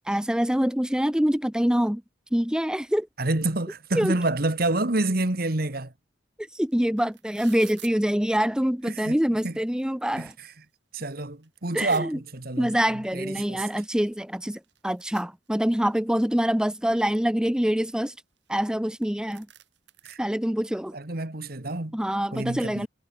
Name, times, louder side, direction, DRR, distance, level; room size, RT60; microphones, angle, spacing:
voice 1, 0.1-2.0 2.3-3.1 4.0-4.1 6.4-10.3 11.7-12.2 12.6-18.1 18.5-19.5 20.2-21.0 21.9-22.9, equal, 5° right, 0.6 m, -25 dB
voice 2, 3.2-5.9 8.8-9.2 9.4-9.5 10.2-10.3 10.9-12.8 13.1-13.6 20.0-20.2 20.9-21.9 22.3-22.9, right 2 dB, 55° right, 1.8 m, -28 dB
sound 1, 6.4-6.5 6.7-7.9 8.8-8.9 9.3-10.1 10.5-10.6 11.0-12.0 13.2-13.3 13.7-13.8 14.0-15.9 16.4-17.0 17.5-18.8 19.0-19.1 19.3-20.2, right 12 dB, 70° right, 5.5 m, -51 dB
head